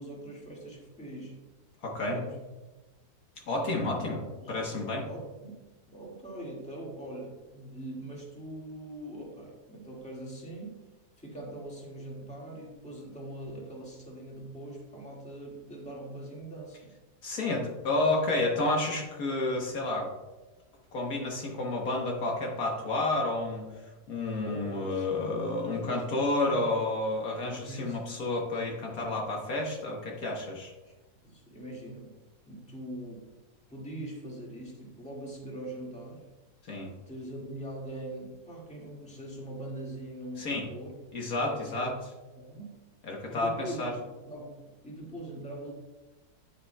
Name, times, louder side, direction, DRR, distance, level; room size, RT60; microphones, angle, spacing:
voice 1, 0.0-1.4 2.1-2.4 3.8-4.6 5.1-5.6 5.9-10.9 11.2-17.0 24.5-26.7 27.5-28.0 30.8-30.9 31.2-32.2 32.5-33.2 33.7-36.3 37.1-41.0 41.4-41.9 42.3-42.8 43.3-43.9 44.3-45.7, right 1 dB, 5° left, -3 dB, 1.7 m, -42 dB
voice 2, 1.8-2.2 3.5-4.2 4.5-5.1 17.2-20.1 20.9-23.6 24.1-30.7 36.7-36.9 40.4-40.7 41.1-41.9 43.0-43.9, left 2 dB, 65° left, 0 dB, 1.5 m, -30 dB
9.7 x 8.8 x 2.2 m, 1.1 s
omnidirectional pair, 1.7 m